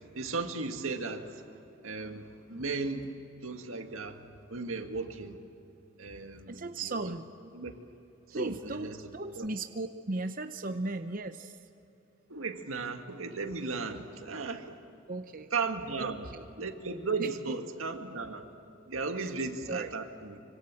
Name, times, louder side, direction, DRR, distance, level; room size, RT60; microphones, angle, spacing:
voice 1, 0.2-1.4 1.8-3.1 3.4-5.4 6.0-7.1 7.5-7.7 8.3-9.0 9.4-9.5 12.3-14.8 15.5-16.3 16.6-18.5 18.9-20.4, right 4 dB, 90° right, 5 dB, 2.0 m, -36 dB
voice 2, 6.5-7.3 8.3-11.6 15.1-15.5 16.0-16.4 17.2-17.6 19.1-19.3 19.7-19.9, right 2 dB, 45° right, 8 dB, 0.7 m, -37 dB
25.5 x 25.0 x 7.6 m, 3.0 s
head